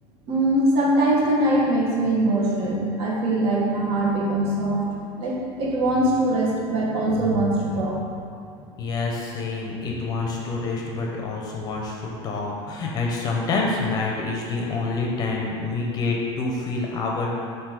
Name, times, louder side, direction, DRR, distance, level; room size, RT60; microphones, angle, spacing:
voice 1, 0.3-8.0 10.8-10.9, right 1 dB, 55° right, -3 dB, 1.2 m, -22 dB
voice 2, 8.8-17.3, left 3 dB, 30° left, -1 dB, 0.7 m, -27 dB
7.3 x 2.7 x 4.8 m, 2.4 s
cardioid pair, 170°, 13 cm